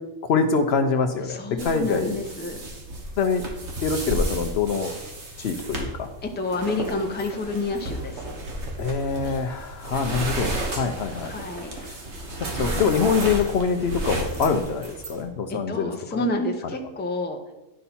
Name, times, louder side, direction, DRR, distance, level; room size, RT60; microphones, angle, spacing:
voice 1, 0.2-2.1 3.2-3.4 3.8-4.9 5.4-6.1 8.8-11.3 11.7-12.0 12.4-16.2, left 5 dB, 65° left, 6 dB, 0.8 m, -25 dB
voice 2, 1.2-2.6 6.2-8.2 11.2-11.7 15.5-17.4, left 2 dB, 10° left, 3 dB, 0.6 m, -29 dB
sound 1, 1.6-15.2, right 1 dB, 60° right, 1.5 m, -33 dB
9.9 x 5.6 x 4.2 m, 1.1 s
omnidirectional pair, 1.3 m